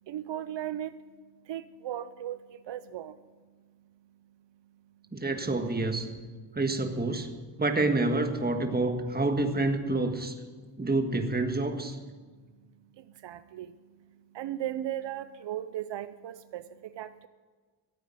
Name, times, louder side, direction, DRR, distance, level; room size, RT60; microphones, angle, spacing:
voice 1, 0.1-0.9 1.5-2.4 2.7-3.1 13.2-13.7 14.4-16.6 17.0-17.3, right 12 dB, 75° right, 13 dB, 0.6 m, -36 dB
voice 2, 5.1-6.1 6.5-7.3 7.6-10.3 10.8-12.0, right 2 dB, 20° right, 6 dB, 1.6 m, -28 dB
14.0 x 8.4 x 9.4 m, 1.4 s
cardioid pair, 90°, 43 cm